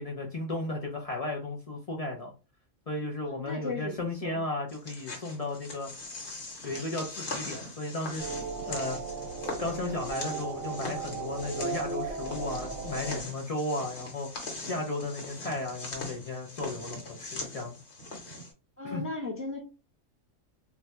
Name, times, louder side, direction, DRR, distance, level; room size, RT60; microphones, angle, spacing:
voice 1, 0.0-2.3 2.9-5.9 6.6-8.3 8.7-9.0 9.6-17.8 18.8-19.0, left 2 dB, 70° left, 0 dB, 0.3 m, -35 dB
voice 2, 3.2-4.4 18.8-19.6, left 2 dB, 20° right, -1 dB, 0.4 m, -36 dB
sound 1, 4.7-18.5, left 2 dB, 55° left, 1.2 m, -41 dB
sound 2, 8.2-13.2, right 4 dB, 65° right, 0.9 m, -36 dB
2.6 x 2.3 x 4.1 m, 0.31 s
omnidirectional pair, 1.4 m